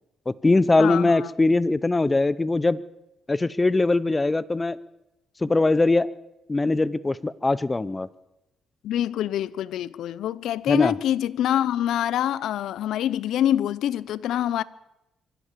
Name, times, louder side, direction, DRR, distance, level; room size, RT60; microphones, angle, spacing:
voice 1, 0.3-2.8 3.3-4.8 5.4-6.1 6.5-8.1 10.7-10.9, left 2 dB, 20° left, 0.6 m, -21 dB
voice 2, 0.8-1.3 8.8-14.6, left 11 dB, 80° left, 0.7 m, -25 dB
24.0 x 15.5 x 7.4 m
cardioid pair, 90°, 0 cm